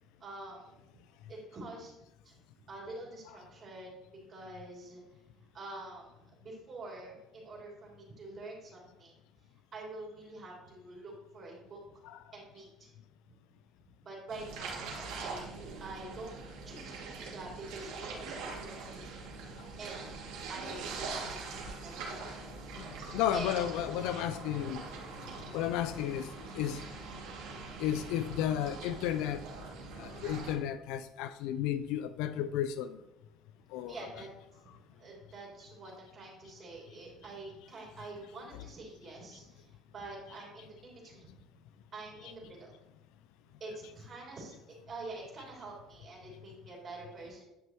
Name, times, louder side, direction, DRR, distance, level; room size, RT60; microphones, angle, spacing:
voice 1, 0.2-0.8 1.3-1.9 2.2-2.4 2.7-5.0 5.5-9.1 9.7-11.8 12.3-12.9 14.0-15.5 15.8-16.4 16.6-19.0 19.5-20.1 20.5-22.6 23.3-23.7 27.7-27.8 33.9-34.3 34.9-41.4 41.9-42.7 43.6-44.5 44.9-47.4, right 2 dB, 35° right, 2.9 m, -46 dB
sound 1, 14.3-30.6, right 4 dB, 85° right, 2.4 m, -43 dB
voice 2, 23.1-24.8 25.5-26.8 27.8-29.4 30.0-33.0 33.7-34.3 42.2-42.3, left 11 dB, 80° left, 0.3 m, -33 dB
10.5 x 6.0 x 3.0 m
cardioid pair, 125°, 0 cm